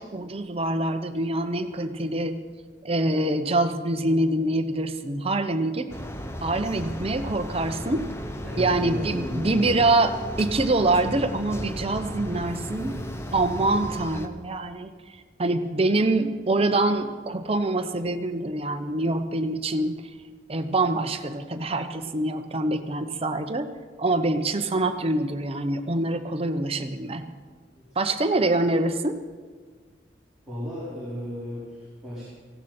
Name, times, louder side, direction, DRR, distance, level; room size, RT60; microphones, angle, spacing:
voice 1, 0.0-2.4 2.8-5.9 6.4-8.0 8.6-12.9 13.3-14.9 15.4-20.0 20.5-23.7 24.0-27.2 28.0-29.2, right 2 dB, 35° right, 7 dB, 0.9 m, -25 dB
sound 1, 5.9-14.3, equal, 15° left, 0.9 m, -35 dB
voice 2, 8.4-9.7 12.4-12.9 27.7-28.0 30.5-32.3, equal, ahead, -11 dB, 4.4 m, -35 dB
17.5 x 16.0 x 4.4 m, 1.5 s
head